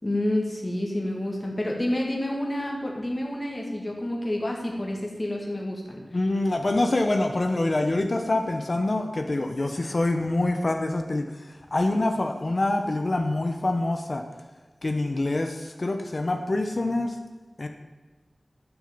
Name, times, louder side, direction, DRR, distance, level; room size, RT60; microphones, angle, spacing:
voice 1, 0.0-6.0, left 1 dB, 35° left, 0 dB, 2.3 m, -29 dB
voice 2, 6.1-11.3 11.7-14.2 14.8-17.2 17.6-17.7, left 2 dB, 55° left, 5 dB, 0.9 m, -25 dB
11.0 x 6.5 x 6.8 m, 1.3 s
wide cardioid pair, 55°, 0 cm